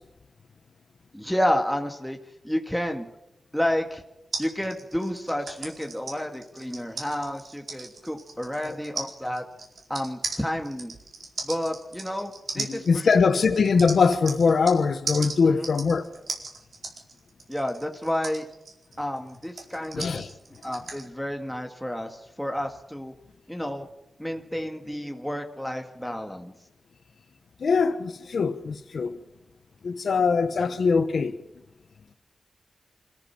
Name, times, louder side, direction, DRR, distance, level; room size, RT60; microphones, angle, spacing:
voice 1, 1.1-2.2 2.4-3.1 3.5-4.0 4.4-9.4 9.9-10.9 11.4-13.2 15.4-15.7 17.5-18.5 19.0-20.2 20.6-23.1 23.5-23.9 24.2-26.5, left 1 dB, 5° left, 1.8 m, -30 dB
sound 1, 4.3-14.8 15.1-21.0, right 3 dB, 75° right, 4.6 m, -37 dB
voice 2, 12.6-16.1 19.9-20.2 27.6-29.2 29.8-31.4, left 5 dB, 75° left, 1.2 m, -22 dB
26.5 x 14.0 x 7.3 m
wide cardioid pair, 80°, 0 cm